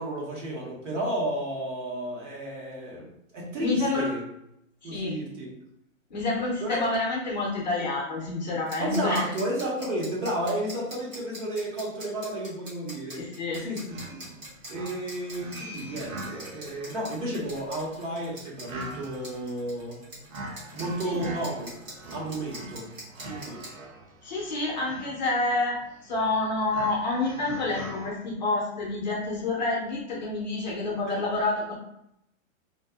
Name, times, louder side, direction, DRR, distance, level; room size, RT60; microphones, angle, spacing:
voice 1, 0.0-4.2 4.8-5.5 6.6-6.8 8.8-13.3 13.6-14.2 14.7-20.0 20.7-21.7 22.1-22.9 23.2-23.7 31.1-31.2, right 1 dB, 65° right, -4 dB, 1.2 m, -32 dB
voice 2, 3.6-4.1 4.8-5.2 6.1-9.3 13.1-13.7 21.1-21.2 24.2-31.8, left 2 dB, 35° left, -4 dB, 0.5 m, -28 dB
sound 1, 8.7-23.7, right 1 dB, 30° right, 0.8 m, -43 dB
sound 2, 13.9-28.1, right 1 dB, 90° right, 0.7 m, -43 dB
2.6 x 2.4 x 2.3 m, 0.79 s
hypercardioid pair, 170°, 40 cm